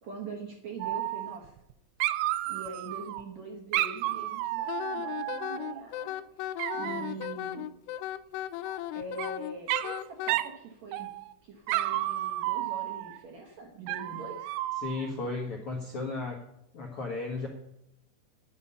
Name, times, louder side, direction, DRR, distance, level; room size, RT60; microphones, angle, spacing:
voice 1, 0.0-1.5 2.5-7.7 8.9-11.1 11.4-14.5, right 3 dB, 65° right, 1 dB, 1.8 m, -43 dB
Dog, 0.8-1.7 2.0-3.2 3.7-5.8 6.6-7.3 8.7-9.3 9.7-10.0 10.3-10.6 10.9-11.3 11.7-13.2 13.9-15.1, right 16 dB, 90° right, 2.6 m, -32 dB
Wind instrument woodwind instrument, 4.7-10.3, left 13 dB, 85° left, 2.5 m, -36 dB
voice 2, 14.8-16.4 16.7-17.5, left 3 dB, 65° left, -1 dB, 1.4 m, -34 dB
9.9 x 9.6 x 5.5 m, 0.82 s
omnidirectional pair, 4.7 m